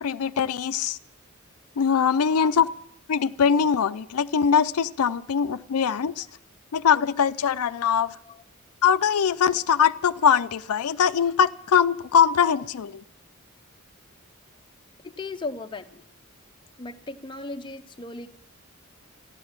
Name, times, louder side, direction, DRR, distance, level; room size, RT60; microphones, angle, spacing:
voice 1, 0.0-1.0 1.8-2.7 3.1-6.3 6.7-8.2 8.8-13.0, left 7 dB, 85° left, 13 dB, 0.4 m, -22 dB
voice 2, 15.0-16.0 16.8-18.3, left 3 dB, 20° left, 6 dB, 0.7 m, -36 dB
14.0 x 11.5 x 7.2 m, 0.74 s
head